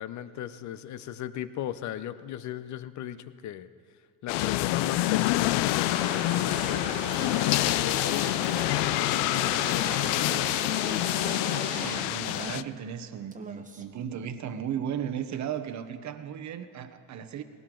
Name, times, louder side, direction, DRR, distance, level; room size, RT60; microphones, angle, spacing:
voice 1, 0.0-3.7 4.2-10.7, left 11 dB, 40° left, 14 dB, 0.7 m, -38 dB
sound 1, 4.3-12.6, left 17 dB, 80° left, 0.6 m, -27 dB
sound 2, 5.9-12.0, right 5 dB, 85° right, 2.2 m, -39 dB
sound 3, 9.0-13.0 13.3-14.0 15.3-15.4, right 3 dB, 15° right, 1.0 m, -44 dB
voice 2, 11.7-17.4, right 8 dB, 40° right, 10 dB, 1.0 m, -35 dB
19.5 x 17.5 x 3.8 m, 2.1 s
cardioid pair, 115°, 44 cm